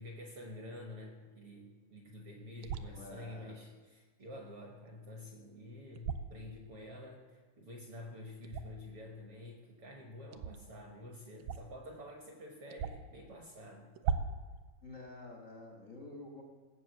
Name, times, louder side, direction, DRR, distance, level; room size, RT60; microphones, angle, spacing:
voice 1, 0.0-14.2, left 1 dB, 65° right, 1 dB, 1.4 m, -49 dB
sound 1, 2.6-2.9 5.9-6.3 8.4-8.9 10.3-10.6 11.4-11.8 12.1-12.2 12.7-13.2 14.0-14.5, right 6 dB, 85° right, 2.3 m, -37 dB
voice 2, 2.9-3.5 14.8-16.4, left 2 dB, 85° left, 1 dB, 0.7 m, -49 dB
17.0 x 6.7 x 7.9 m, 1.4 s
omnidirectional pair, 4.2 m